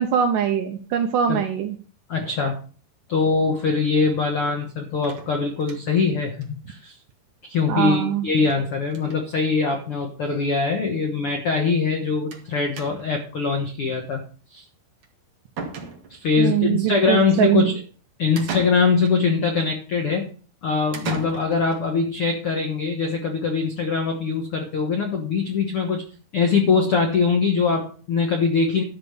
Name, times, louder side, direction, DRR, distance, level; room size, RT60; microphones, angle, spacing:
voice 1, 0.0-1.8 7.7-8.3 16.4-17.7, right 9 dB, 80° right, 5 dB, 2.0 m, -22 dB
voice 2, 2.1-2.6 3.1-7.0 7.5-14.2 14.5-14.6 16.1-17.8 18.2-20.3 20.6-26.0 26.3-28.8, left 4 dB, 80° left, 3 dB, 1.2 m, -22 dB
sound 1, 5.0-6.1 6.4-6.5 6.8-6.9 7.1-7.2 8.4-8.6 8.9-9.2 10.1-10.2 10.5-10.6 12.3-12.5 12.8-13.2 15.0-15.1 15.6-16.3 18.4-19.2 20.9-21.8, right 4 dB, 50° right, 1.9 m, -35 dB
12.5 x 5.0 x 6.8 m, 0.41 s
omnidirectional pair, 4.7 m